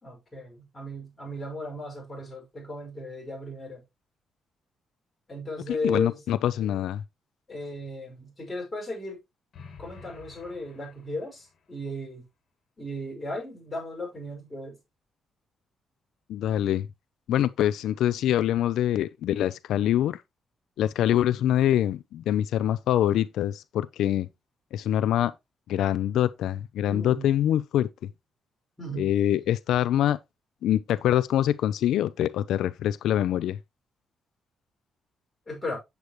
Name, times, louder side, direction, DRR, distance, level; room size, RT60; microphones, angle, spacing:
voice 1, 0.0-3.8 5.3-6.2 7.5-9.2 9.8-12.2 12.8-14.8 26.9-27.3 28.8-29.1 35.5-35.8, left 1 dB, 15° left, 5.6 m, -35 dB
voice 2, 5.7-7.0 16.3-16.9 17.3-20.2 20.8-24.3 24.7-25.3 25.7-27.9 29.0-30.2 30.6-33.6, left 11 dB, 90° left, 0.4 m, -24 dB
sound 1, 9.5-11.6, left 4 dB, 50° left, 2.7 m, -49 dB
8.4 x 8.0 x 3.0 m
cardioid pair, 155°, 0 cm